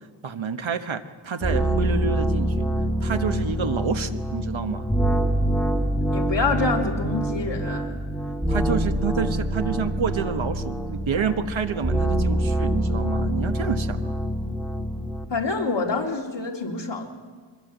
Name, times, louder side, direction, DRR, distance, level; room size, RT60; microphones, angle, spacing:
voice 1, 0.2-2.7 3.0-4.8 8.5-14.2, right 6 dB, 65° right, 9 dB, 1.3 m, -28 dB
sound 1, 1.4-15.2, right 1 dB, ahead, 2.3 m, -25 dB
voice 2, 6.1-8.0 15.3-17.1, left 3 dB, 55° left, 0 dB, 3.8 m, -26 dB
24.5 x 21.0 x 8.1 m, 1.5 s
wide cardioid pair, 110°, 50 cm